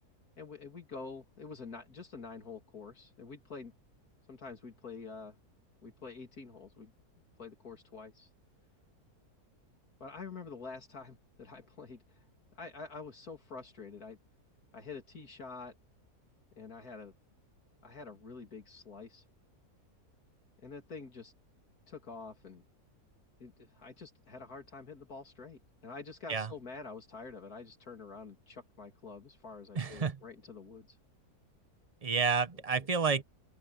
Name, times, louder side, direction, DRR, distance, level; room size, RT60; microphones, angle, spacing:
voice 1, 0.4-3.7 4.3-5.4 5.8-6.9 7.4-8.3 10.0-12.2 12.5-14.2 14.7-15.7 16.6-17.1 17.8-19.2 20.6-21.3 21.9-22.6 23.4-31.0 32.8-32.9, left 4 dB, 70° left, 3.2 m, -47 dB
voice 2, 29.7-30.2 32.0-33.2, right 5 dB, 30° right, 0.8 m, -30 dB
open air
omnidirectional pair, 1.7 m